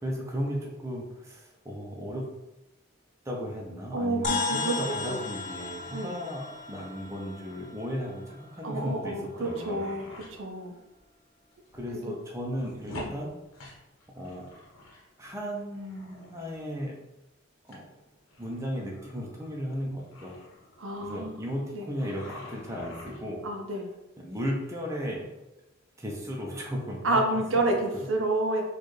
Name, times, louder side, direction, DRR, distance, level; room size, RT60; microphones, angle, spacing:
voice 1, 0.0-2.2 3.2-9.9 11.7-13.3 14.2-14.5 15.2-17.0 17.7-17.9 18.4-20.4 21.0-23.4 24.2-25.3 26.0-27.2 27.5-27.6 27.9-28.1, equal, 15° right, -2 dB, 0.6 m, -35 dB
voice 2, 3.9-4.8 5.1-5.2 5.9-6.2 8.6-10.7 12.1-12.2 12.9-13.1 20.8-21.4 21.7-21.9 23.4-23.9 27.0-28.6, right 2 dB, 75° right, 2 dB, 0.6 m, -29 dB
sound 1, 4.2-8.8, left 4 dB, 40° left, 0.3 m, -35 dB
sound 2, 5.5-5.6 6.5-6.8 7.2-7.3 7.5-7.7 8.5-8.6 9.1-10.4 11.0-11.1 11.5-12.0 12.2-15.1 15.3-16.6 17.7-17.8 18.3-21.7 22.0-23.5 24.3-24.6, left 2 dB, 90° left, 0.9 m, -47 dB
4.3 x 2.4 x 3.2 m, 0.97 s
head